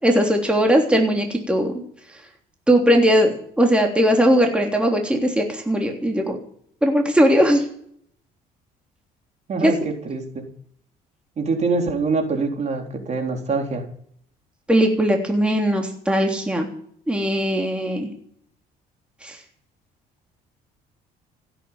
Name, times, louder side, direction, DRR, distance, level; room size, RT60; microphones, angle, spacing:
voice 1, 0.0-1.8 2.7-6.4 6.8-7.6 9.6-9.7 14.7-16.7 17.1-18.1 19.2-19.4, equal, 5° right, 2 dB, 3.3 m, -19 dB
voice 2, 9.5-10.5 11.4-13.8, right 4 dB, 40° right, 3 dB, 3.9 m, -24 dB
16.0 x 9.0 x 8.8 m, 0.63 s
cardioid pair, 110°, 17 cm